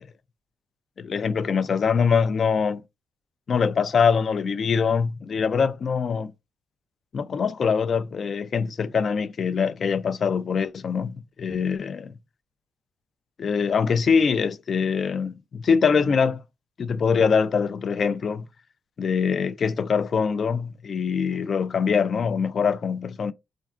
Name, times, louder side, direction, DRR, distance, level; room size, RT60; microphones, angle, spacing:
voice 1, 1.0-2.8 3.5-6.3 7.1-12.1 13.4-16.4 16.8-18.5 19.0-23.3, left 6 dB, 50° left, 0.3 m, -23 dB
3.5 x 2.2 x 2.4 m
cardioid pair, 90°, 0 cm